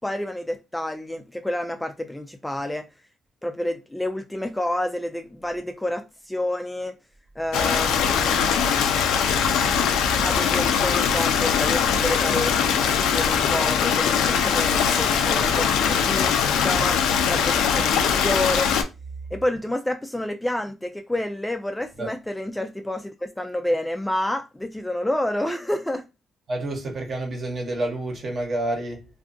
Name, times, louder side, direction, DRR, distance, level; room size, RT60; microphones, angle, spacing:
voice 1, 0.0-2.9 3.4-6.9 7.4-8.6 10.2-12.8 13.1-16.4 16.6-18.7 19.3-26.1, left 1 dB, 10° left, 0.3 m, -29 dB
Stream, 7.5-18.8, left 7 dB, 90° left, 0.3 m, -21 dB
voice 2, 26.5-29.0, right 1 dB, 45° right, 1.0 m, -29 dB
2.6 x 2.4 x 2.5 m
cardioid pair, 90°, 0 cm